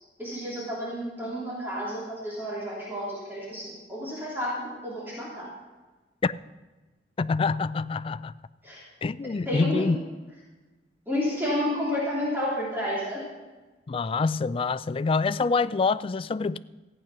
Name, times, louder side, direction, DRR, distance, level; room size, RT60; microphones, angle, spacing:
voice 1, 0.2-5.5 8.6-8.8 9.4-9.9 11.1-13.2, left 1 dB, 10° right, 3.2 m, -31 dB
voice 2, 7.2-8.3 9.0-10.0 13.9-16.6, left 4 dB, 30° left, 0.3 m, -26 dB
14.5 x 8.9 x 6.0 m
head